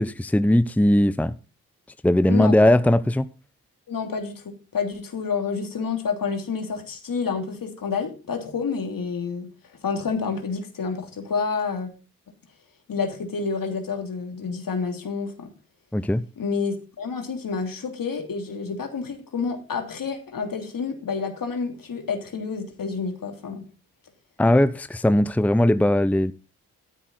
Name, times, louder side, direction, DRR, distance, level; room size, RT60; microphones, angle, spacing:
voice 1, 0.0-1.3 2.0-3.3 15.9-16.2 24.4-26.3, left 1 dB, 5° left, 0.8 m, -19 dB
voice 2, 3.9-4.4 4.7-9.5 9.8-11.9 12.9-15.5 16.4-23.6, left 5 dB, 65° left, 3.0 m, -29 dB
12.5 x 10.0 x 3.9 m
supercardioid pair, 40°, 37 cm